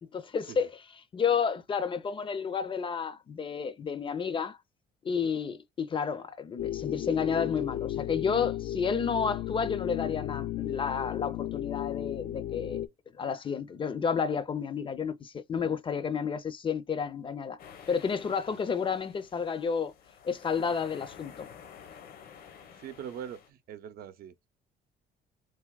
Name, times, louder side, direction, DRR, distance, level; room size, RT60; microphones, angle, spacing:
voice 1, 0.1-0.7 1.1-4.6 5.0-12.8 13.2-17.6 17.9-19.9 20.2-21.5, left 6 dB, 30° left, 0.5 m, -31 dB
sound 1, 6.6-12.9, left 13 dB, 85° left, 0.4 m, -34 dB
sound 2, 17.6-23.5, left 7 dB, 65° left, 0.8 m, -51 dB
voice 2, 22.7-24.3, right 9 dB, 65° right, 0.6 m, -42 dB
3.4 x 2.8 x 2.3 m
cardioid pair, 110°, 17 cm